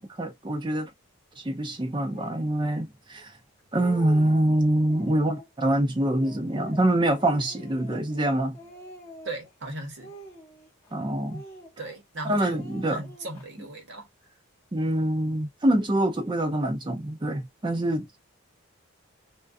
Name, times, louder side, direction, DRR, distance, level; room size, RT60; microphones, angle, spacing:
voice 1, 0.2-0.9 1.4-3.3 3.7-8.6 10.9-11.4 12.2-13.0 14.7-18.2, right 1 dB, 20° right, 0.5 m, -25 dB
Speech, 2.1-2.5 3.2-3.3 3.6-4.5 4.9-5.5 6.0-8.3 8.5-9.5 10.0-10.9 11.3-12.0 12.3-13.5, right 1 dB, 15° left, 0.9 m, -46 dB
voice 2, 9.2-10.1 11.8-14.1, right 2 dB, 55° right, 0.9 m, -38 dB
2.3 x 2.2 x 2.5 m
head